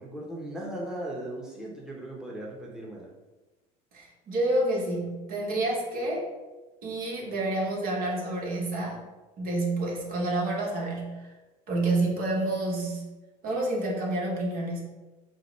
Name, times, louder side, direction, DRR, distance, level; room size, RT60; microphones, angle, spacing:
voice 1, 0.0-3.1, right 1 dB, 5° right, -3 dB, 1.0 m, -37 dB
voice 2, 3.9-6.3 6.8-9.0 9.4-11.1 11.7-13.0 13.4-14.8, right 2 dB, 55° right, -1 dB, 1.2 m, -28 dB
5.0 x 2.1 x 4.5 m, 1.1 s
supercardioid pair, 90°, 18 cm